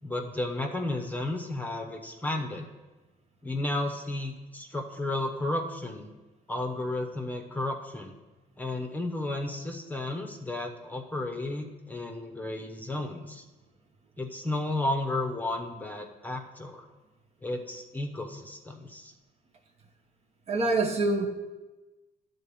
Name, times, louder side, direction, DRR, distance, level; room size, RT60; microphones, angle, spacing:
voice 1, 0.0-2.7 3.4-6.1 6.5-8.1 8.6-13.4 14.2-16.8 17.4-19.1, left 2 dB, 10° left, 3 dB, 0.9 m, -33 dB
voice 2, 20.5-21.3, right 2 dB, 40° right, 4 dB, 1.0 m, -25 dB
11.0 x 4.0 x 7.0 m, 1.2 s
cardioid pair, 110°, 17 cm